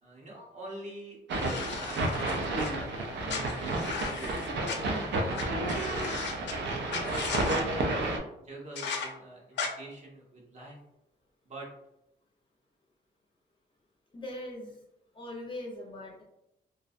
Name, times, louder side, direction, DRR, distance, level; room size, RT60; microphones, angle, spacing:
voice 1, 0.0-6.3 7.1-10.8 11.4-11.7, right 1 dB, 40° right, -2 dB, 0.7 m, -46 dB
sound 1, 1.3-2.7 3.3-4.8 5.3-5.4 5.7-6.5 6.9-7.6 8.8-9.1 9.6-9.7, left 5 dB, 90° left, 0.4 m, -36 dB
sound 2, 1.3-8.2, right 2 dB, 80° right, 0.4 m, -31 dB
voice 2, 14.1-14.8 15.1-16.2, left 1 dB, 25° left, -1 dB, 0.4 m, -40 dB
2.4 x 2.0 x 2.5 m, 0.84 s
wide cardioid pair, 155°, 18 cm